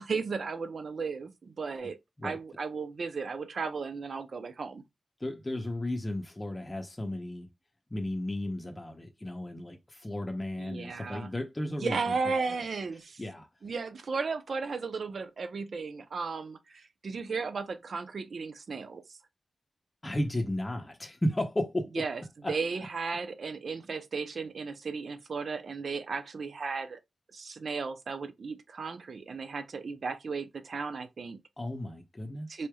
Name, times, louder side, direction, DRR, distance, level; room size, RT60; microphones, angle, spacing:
voice 1, 0.0-2.0 2.2-4.8 10.6-11.3 11.7-13.2 13.6-19.2 21.9-22.2 22.5-27.0 27.3-31.4 32.5-32.7, right 4 dB, 65° right, 0.6 m, -35 dB
voice 2, 5.2-7.5 7.9-12.5 13.2-13.5 20.0-22.0 22.4-22.5 31.6-32.6, left 1 dB, 20° left, 0.7 m, -34 dB
4.1 x 3.2 x 2.3 m
wide cardioid pair, 90°, 0 cm